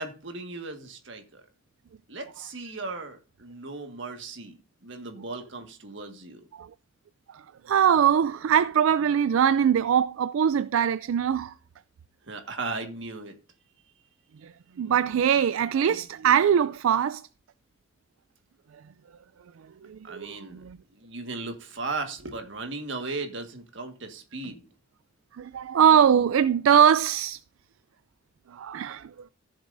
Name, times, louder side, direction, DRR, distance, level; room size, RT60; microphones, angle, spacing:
voice 1, 0.0-1.4 2.1-4.6 4.8-6.5 12.3-13.3 15.9-16.0 20.0-24.7, right 3 dB, 60° right, 1.6 m, -37 dB
voice 2, 7.3-11.5 14.4-14.5 14.8-17.3 19.8-20.8 25.4-27.4 28.5-29.1, right 8 dB, 80° right, 0.3 m, -22 dB
14.5 x 7.3 x 2.6 m
head